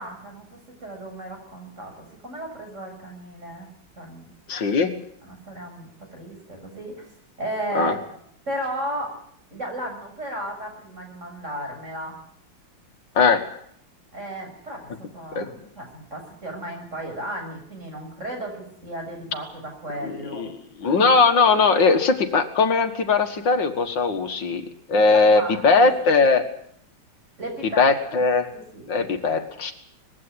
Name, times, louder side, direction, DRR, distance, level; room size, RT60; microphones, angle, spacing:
voice 1, 0.0-3.7 4.0-4.3 5.2-7.1 7.4-7.9 8.5-9.2 9.5-12.2 14.1-20.5 20.8-21.1 25.1-26.2 27.4-28.2 28.5-29.5, right 1 dB, 35° right, 2 dB, 7.1 m, -35 dB
voice 2, 4.5-4.9 7.7-8.0 13.2-13.4 15.4-15.5 20.0-24.6 24.9-26.4 27.8-28.5 28.9-29.7, left 4 dB, 70° left, 8 dB, 2.3 m, -19 dB
21.0 x 16.0 x 9.9 m, 0.66 s
omnidirectional pair, 2.1 m